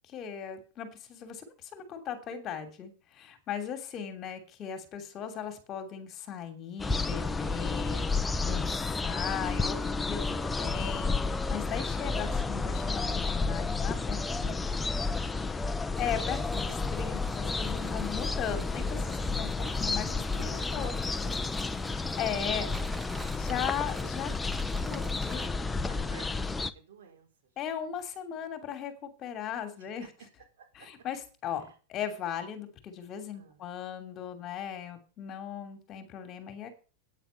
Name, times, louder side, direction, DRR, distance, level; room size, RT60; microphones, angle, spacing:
voice 1, 0.1-8.7 8.9-14.5 16.0-20.9 21.8-22.7 23.3-24.3 24.8-25.4 27.6-30.1 30.8-36.7, left 8 dB, 35° left, 8 dB, 2.8 m, -38 dB
sound 1, 6.8-26.7, left 3 dB, 10° left, 0.8 m, -31 dB
voice 2, 9.6-10.0 14.3-15.9 20.8-21.4 22.2-22.8 25.2-27.5 29.8-30.1 30.6-30.9 31.6-31.8 33.3-33.6, right 6 dB, 75° right, 2 dB, 4.6 m, -55 dB
sound 2, 15.9-25.5, right 1 dB, 5° right, 1.3 m, -46 dB
9.4 x 9.1 x 5.7 m, 0.35 s
hypercardioid pair, 115°, 0 cm